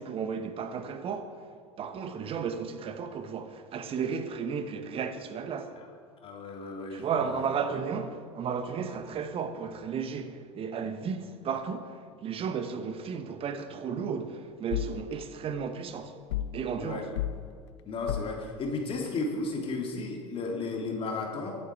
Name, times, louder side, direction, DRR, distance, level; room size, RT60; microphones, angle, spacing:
voice 1, 0.0-1.4 1.8-5.8 6.9-16.2 16.5-17.1, right 6 dB, 35° right, 1.2 m, -34 dB
voice 2, 6.2-7.4 16.8-17.1 17.8-21.6, left 3 dB, 35° left, 3.2 m, -34 dB
sound 1, 14.7-15.0 16.3-16.6 17.1-17.4 18.1-18.4, left 12 dB, 65° left, 0.5 m, -32 dB
24.0 x 8.9 x 4.7 m
figure-of-eight pair, 75°, 16 cm